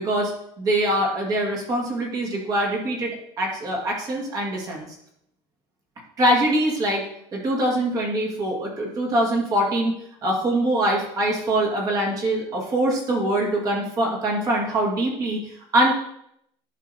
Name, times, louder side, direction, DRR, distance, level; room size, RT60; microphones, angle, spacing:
voice 1, 0.0-4.9 6.2-7.1 7.3-9.9 10.2-15.9, right 1 dB, 30° right, -1 dB, 1.6 m, -23 dB
10.0 x 5.5 x 2.7 m, 0.73 s
cardioid pair, 165°, 13 cm